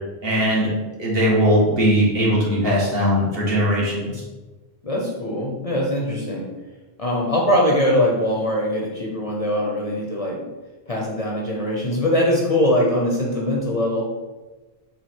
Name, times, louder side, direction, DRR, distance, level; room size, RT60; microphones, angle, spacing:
voice 1, 0.2-0.7 1.0-4.2, equal, 65° right, -4 dB, 1.5 m, -19 dB
voice 2, 4.8-6.5 7.0-10.4 10.9-14.1, left 1 dB, 40° left, -2 dB, 0.6 m, -22 dB
4.5 x 2.5 x 4.3 m, 1.2 s
omnidirectional pair, 1.1 m